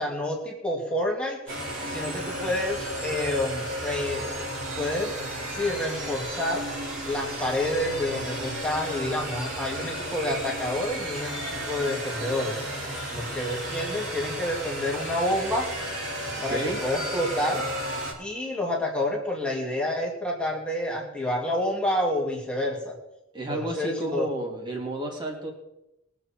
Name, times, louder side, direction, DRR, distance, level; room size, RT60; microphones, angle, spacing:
voice 1, 0.0-1.4 1.9-4.4 4.8-5.1 5.5-6.7 7.0-12.6 13.1-15.7 16.4-17.6 18.2-22.9 23.5-24.3, left 1 dB, 5° left, -2 dB, 2.4 m, -28 dB
sound 1, 1.5-18.1, right 1 dB, 65° right, 4.6 m, -33 dB
voice 2, 16.4-16.8 23.3-25.5, right 1 dB, 20° right, -1 dB, 2.8 m, -31 dB
22.5 x 7.5 x 4.5 m, 0.91 s
head